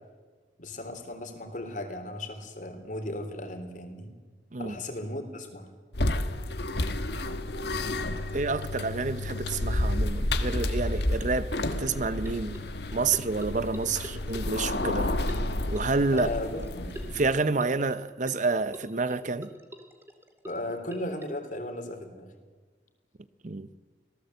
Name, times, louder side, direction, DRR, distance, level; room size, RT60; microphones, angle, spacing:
voice 1, 0.6-4.1 4.6-5.7 16.1-16.9 20.4-22.3, left 1 dB, 45° left, 3.6 m, -36 dB
sound 1, 5.9-17.4, left 1 dB, 70° left, 1.5 m, -30 dB
voice 2, 8.3-11.5 11.8-12.6 12.9-15.1 15.7-16.3 17.1-19.5 23.4-23.7, right 3 dB, 45° right, 0.8 m, -28 dB
sound 2, 11.9-21.2, right 1 dB, 15° right, 2.2 m, -46 dB
26.0 x 18.0 x 8.0 m
head